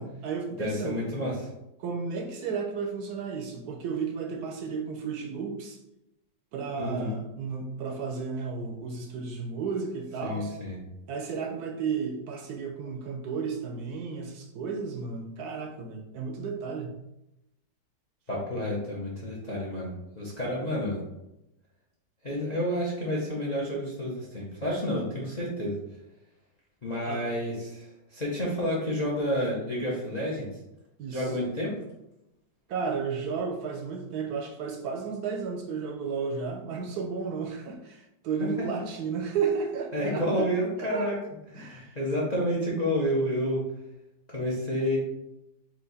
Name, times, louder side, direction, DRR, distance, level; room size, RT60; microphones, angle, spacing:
voice 1, 0.0-1.0 1.8-5.8 6.5-10.5 11.1-16.9 27.1-27.2 31.0-31.3 32.7-40.5 40.8-41.1 41.5-42.0, right 5 dB, 70° right, 3 dB, 1.0 m, -33 dB
voice 2, 0.6-1.5 6.8-7.2 10.2-10.8 18.3-21.0 22.2-25.7 26.8-30.5 31.1-31.7 38.4-38.6 39.9-41.2 41.5-43.6 44.3-45.0, equal, 45° left, -4 dB, 0.5 m, -30 dB
4.4 x 2.5 x 4.0 m, 0.89 s
omnidirectional pair, 1.9 m